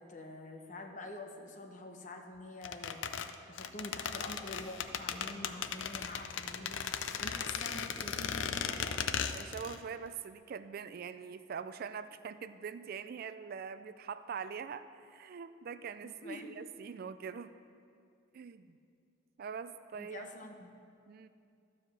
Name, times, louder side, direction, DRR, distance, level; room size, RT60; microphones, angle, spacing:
voice 1, 0.0-3.1 3.5-9.0 16.0-16.5 19.9-20.7, left 2 dB, 40° left, 3 dB, 0.9 m, -46 dB
sound 1, 2.6-9.8 10.1-10.2, left 7 dB, 85° left, 0.5 m, -37 dB
sound 2, 3.9-9.5, equal, ahead, 2.6 m, -57 dB
voice 2, 9.3-17.5 18.3-18.8 19.4-20.3 21.1-21.3, right 6 dB, 50° right, 12 dB, 0.3 m, -43 dB
12.0 x 5.0 x 7.3 m, 2.4 s
head